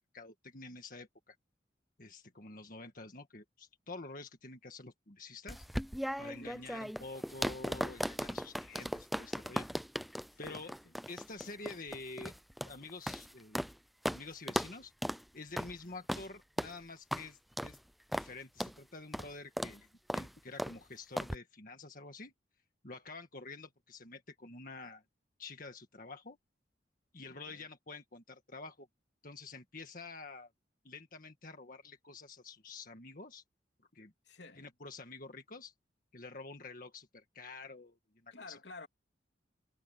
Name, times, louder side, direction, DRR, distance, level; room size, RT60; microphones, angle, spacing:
voice 1, 0.1-1.4 2.0-5.7 6.2-9.7 10.4-10.7 11.1-12.3 12.6-13.6 14.1-14.9 15.3-17.8 18.1-22.3 22.8-25.0 25.4-26.4 27.1-28.9 29.2-30.5 30.8-33.4 33.9-34.1 34.6-35.7 36.1-38.0 38.2-38.6, left 3 dB, 50° left, 1.8 m, -48 dB
sound 1, 5.5-13.7 14.0-14.2 14.5-14.7 15.0-15.2 15.6-15.7 16.1-16.3 16.6-16.7 17.1-17.2 17.6-17.8 18.1-18.3 18.6-18.7 19.1-19.3 19.6-19.8 20.1-20.3 20.6-20.8 21.2-21.4, equal, ahead, 0.5 m, -37 dB
voice 2, 6.4-6.9 10.3-10.9 15.8-16.0 27.3-27.7 34.2-34.7 38.3-38.9, left 3 dB, 70° left, 3.2 m, -52 dB
head